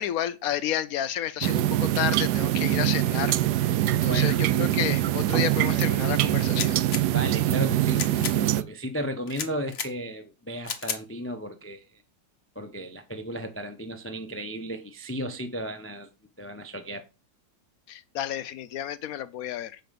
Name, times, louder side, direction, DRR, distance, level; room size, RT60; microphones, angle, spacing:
voice 1, 0.0-6.8 17.9-19.8, left 11 dB, 65° left, 0.9 m, -31 dB
sound 1, 1.4-8.6, right 14 dB, 70° right, 1.0 m, -24 dB
voice 2, 4.1-4.4 7.1-12.0 12.5-16.1 16.4-17.1, equal, 20° left, 0.3 m, -34 dB
sound 2, 6.5-7.0 7.9-8.4 9.3-9.9 10.6-11.0, left 6 dB, 45° left, 1.0 m, -33 dB
7.8 x 4.9 x 5.2 m
omnidirectional pair, 2.0 m